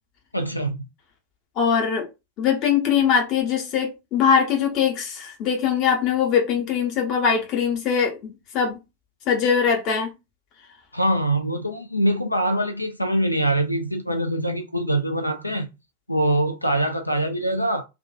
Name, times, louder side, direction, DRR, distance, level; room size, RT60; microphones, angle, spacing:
voice 1, 0.3-0.8 10.9-15.7 16.1-17.8, right 1 dB, 85° left, 0.3 m, -23 dB
voice 2, 1.6-2.1 2.4-8.8 9.3-10.1, left 7 dB, 40° left, 0.9 m, -22 dB
2.5 x 2.3 x 2.3 m
figure-of-eight pair, 90°, 0 cm